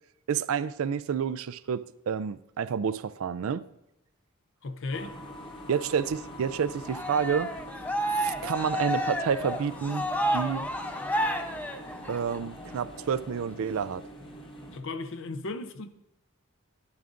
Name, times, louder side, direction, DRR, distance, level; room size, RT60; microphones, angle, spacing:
voice 1, 0.3-3.6 5.7-7.5 8.2-10.0 10.3-10.7 12.1-14.0, right 7 dB, 70° right, 0.4 m, -29 dB
voice 2, 4.6-5.2 14.7-15.9, left 3 dB, 60° left, 0.6 m, -35 dB
sound 1, 4.9-14.8, equal, 20° left, 1.1 m, -43 dB
Cheering, 6.9-12.4, equal, 5° left, 0.5 m, -30 dB
12.5 x 10.5 x 2.5 m
head